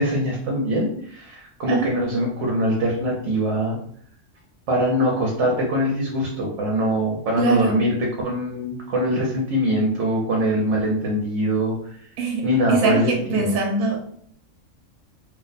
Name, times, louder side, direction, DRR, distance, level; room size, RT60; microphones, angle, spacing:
voice 1, 0.0-3.8 4.7-12.0 12.4-13.1 13.4-13.5, equal, 65° right, -1 dB, 0.9 m, -23 dB
voice 2, 7.4-7.8 12.2-14.2, right 3 dB, 90° right, 1 dB, 1.0 m, -23 dB
2.6 x 2.1 x 3.9 m, 0.62 s
omnidirectional pair, 1.4 m